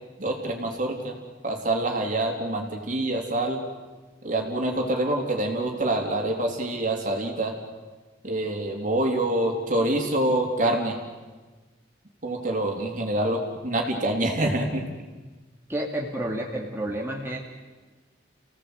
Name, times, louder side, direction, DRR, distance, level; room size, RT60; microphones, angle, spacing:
voice 1, 0.2-1.2 1.4-3.6 4.2-7.5 8.2-11.0 12.2-14.8, right 1 dB, 45° right, 1 dB, 3.7 m, -26 dB
voice 2, 15.7-17.4, right 1 dB, 15° right, -2 dB, 2.5 m, -30 dB
30.0 x 18.0 x 8.1 m, 1.3 s
head